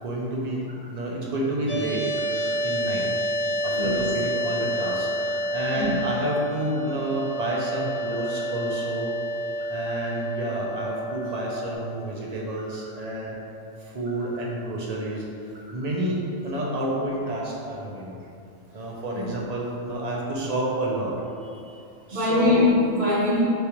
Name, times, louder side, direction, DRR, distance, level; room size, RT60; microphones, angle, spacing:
voice 1, 0.0-3.1 3.6-9.2 9.6-13.4 13.8-15.2 15.5-18.2 18.7-21.1 22.1-22.6, right 1 dB, 40° right, -4 dB, 0.6 m, -29 dB
sound 1, 1.7-11.7, equal, 10° left, 0.6 m, -29 dB
voice 2, 3.7-4.1 4.8-5.0 5.7-6.0 19.1-19.3 22.1-23.4, left 2 dB, 55° right, -8 dB, 1.3 m, -23 dB
6.3 x 2.5 x 3.0 m, 2.6 s
omnidirectional pair, 1.3 m